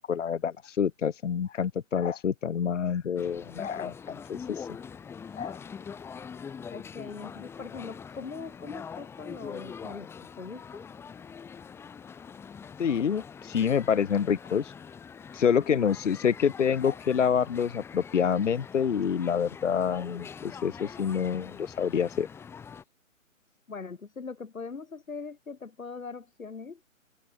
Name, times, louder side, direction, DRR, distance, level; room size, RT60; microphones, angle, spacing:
voice 1, 0.1-4.7 5.3-5.6 12.8-14.7 15.3-22.3, left 7 dB, 65° left, 1.1 m, -27 dB
sound 1, 3.2-22.8, left 6 dB, 5° left, 2.1 m, -44 dB
voice 2, 6.7-10.1 10.4-10.9 23.7-26.8, left 4 dB, 90° left, 2.2 m, -41 dB
open air
hypercardioid pair, 150°, 40 cm